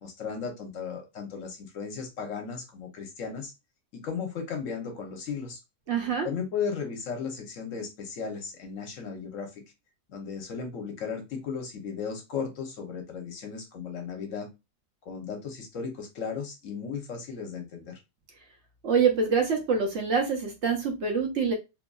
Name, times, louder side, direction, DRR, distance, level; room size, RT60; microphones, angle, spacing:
voice 1, 0.0-3.5 3.9-5.6 6.2-9.6 10.1-14.5 15.0-18.0, left 6 dB, 70° left, 4 dB, 1.1 m, -35 dB
voice 2, 5.9-6.3 18.8-21.5, right 5 dB, 60° right, 2 dB, 0.9 m, -25 dB
2.9 x 2.5 x 2.2 m, 0.24 s
omnidirectional pair, 1.5 m